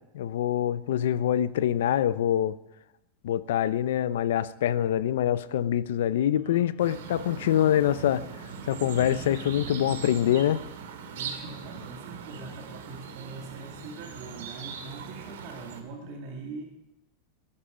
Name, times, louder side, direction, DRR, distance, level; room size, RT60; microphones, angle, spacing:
voice 1, 0.1-2.6 3.2-8.2 8.7-10.6, left 11 dB, 75° left, 16 dB, 0.7 m, -25 dB
voice 2, 6.3-6.7 11.0-16.6, right 3 dB, 45° right, 1 dB, 2.2 m, -42 dB
sound 1, 6.8-15.8, right 6 dB, 85° right, 2.4 m, -40 dB
20.0 x 11.5 x 5.1 m, 0.91 s
supercardioid pair, 180°, 0 cm